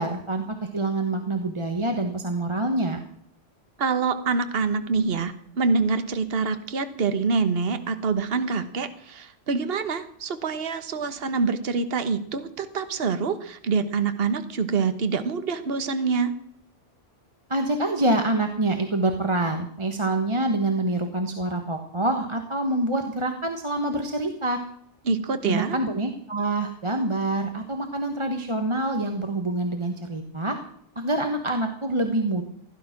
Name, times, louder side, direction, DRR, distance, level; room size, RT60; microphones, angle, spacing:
voice 1, 0.0-3.0 17.5-24.6 25.4-30.6 30.9-32.4, right 2 dB, 25° right, 5 dB, 1.4 m, -26 dB
voice 2, 3.8-16.3 25.0-25.8, right 4 dB, 55° right, 10 dB, 1.4 m, -26 dB
16.5 x 12.0 x 6.1 m, 0.67 s
omnidirectional pair, 1.2 m